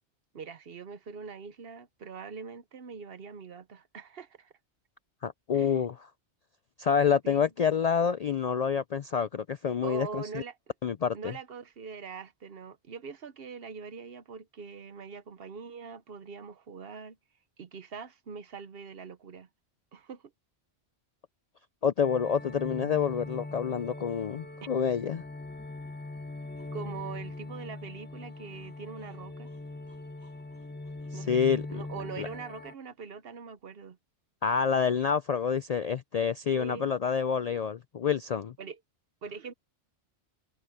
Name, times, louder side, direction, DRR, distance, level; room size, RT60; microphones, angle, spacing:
voice 1, 0.3-4.5 5.5-5.9 7.2-7.5 9.8-10.6 11.1-17.2 17.6-19.5 19.9-20.3 26.7-29.5 31.1-34.0 36.5-36.9 38.6-38.8 39.2-39.5, right 5 dB, 60° right, 1.0 m, -43 dB
voice 2, 5.2-5.9 6.8-10.4 10.8-11.3 21.8-25.2 31.1-31.8 32.2-32.3 34.4-38.5, left 7 dB, 60° left, 0.4 m, -28 dB
sound 1, 22.0-32.7, left 2 dB, 10° left, 0.6 m, -41 dB
sound 2, 26.4-31.7, equal, 85° right, 6.9 m, -70 dB
omnidirectional pair, 1.2 m